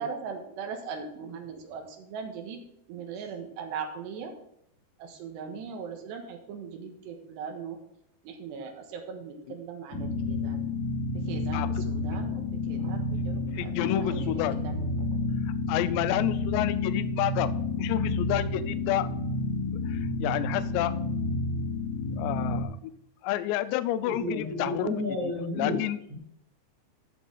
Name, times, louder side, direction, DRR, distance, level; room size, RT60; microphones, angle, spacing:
voice 1, 0.0-2.6 2.9-4.3 5.0-7.8 8.2-10.7 11.3-15.1, right 6 dB, 75° right, 3 dB, 3.4 m, -39 dB
sound 1, 9.9-22.6, left 2 dB, 25° left, 2.4 m, -30 dB
voice 2, 11.5-11.8 13.5-14.5 15.5-17.5 17.8-19.1 19.7-20.9 22.2-22.9 23.2-24.9 25.2-26.0, left 13 dB, 80° left, 13 dB, 2.8 m, -30 dB
voice 3, 24.0-25.7 26.1-26.2, left 2 dB, 10° right, -8 dB, 1.8 m, -31 dB
13.5 x 6.4 x 3.9 m, 0.76 s
omnidirectional pair, 5.2 m